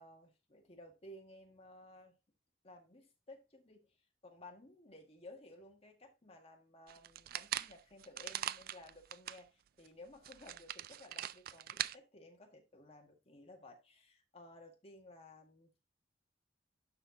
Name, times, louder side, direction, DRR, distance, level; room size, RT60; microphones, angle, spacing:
voice 1, 0.0-2.2 2.6-4.0 4.2-15.9, left 1 dB, 35° left, 1.9 m, -56 dB
sound 1, 6.9-9.4 9.9-10.0 10.2-11.9, right 12 dB, 55° right, 0.3 m, -41 dB
11.5 x 4.4 x 2.8 m
head